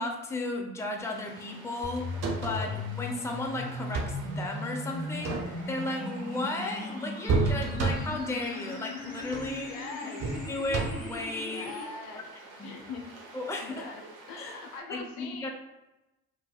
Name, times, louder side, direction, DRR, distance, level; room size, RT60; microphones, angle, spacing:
voice 1, 0.0-2.1 2.4-5.4 5.7-9.7 10.0-10.1 10.5-11.7 12.6-12.7 13.3-13.9 14.4-14.6 14.9-15.5, left 2 dB, 5° left, 1 dB, 0.5 m, -34 dB
sound 1, 1.0-14.8, right 3 dB, 70° right, 0.8 m, -50 dB
sound 2, 1.8-11.8, left 2 dB, 25° left, 1.1 m, -38 dB
sound 3, 2.0-2.8 3.7-4.3 5.1-5.8 7.3-8.3 9.2-9.6 10.2-11.2 12.9-13.0, right 3 dB, 45° right, 0.6 m, -31 dB
voice 2, 9.7-10.5 11.4-12.2 12.6-13.1 13.6-15.5, left 4 dB, 65° left, 3 dB, 0.6 m, -42 dB
2.9 x 2.7 x 2.2 m, 0.98 s
hypercardioid pair, 55°, 38 cm